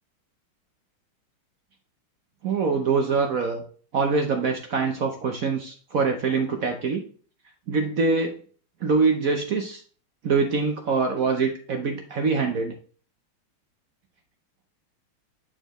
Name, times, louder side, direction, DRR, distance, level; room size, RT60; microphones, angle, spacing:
voice 1, 2.4-3.6 3.9-7.0 7.7-8.3 8.8-9.8 10.2-12.7, right 4 dB, 60° right, 4 dB, 0.9 m, -24 dB
9.9 x 4.5 x 3.0 m, 0.42 s
omnidirectional pair, 2.3 m